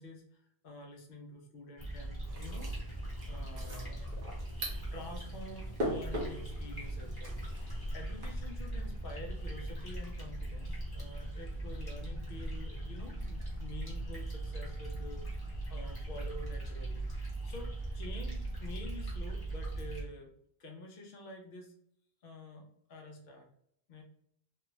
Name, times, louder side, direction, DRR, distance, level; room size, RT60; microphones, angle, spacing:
voice 1, 0.0-2.9 3.2-4.2 4.9-20.3 20.6-21.7 22.2-23.5 23.9-24.0, left 1 dB, 65° left, 2 dB, 0.9 m, -48 dB
sound 1, 1.8-20.0, right 1 dB, 25° left, 1.0 m, -39 dB
sound 2, 2.2-8.3, equal, 60° right, 1.1 m, -42 dB
3.2 x 2.3 x 3.0 m, 0.68 s
omnidirectional pair, 1.0 m